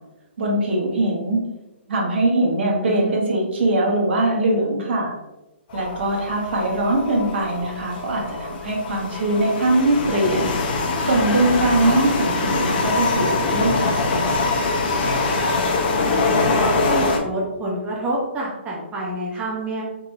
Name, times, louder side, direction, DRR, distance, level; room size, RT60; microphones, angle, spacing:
voice 1, 0.4-1.4 1.9-5.1 5.7-10.4 11.0-14.0, right 2 dB, 65° right, -2 dB, 1.2 m, -21 dB
voice 2, 2.5-3.2 11.8-12.0 16.5-19.8, right 1 dB, 20° right, -4 dB, 0.6 m, -27 dB
sound 1, 5.7-17.2, left 3 dB, 45° left, 0.7 m, -23 dB
3.8 x 2.8 x 2.6 m, 0.99 s
hypercardioid pair, 135°, 7 cm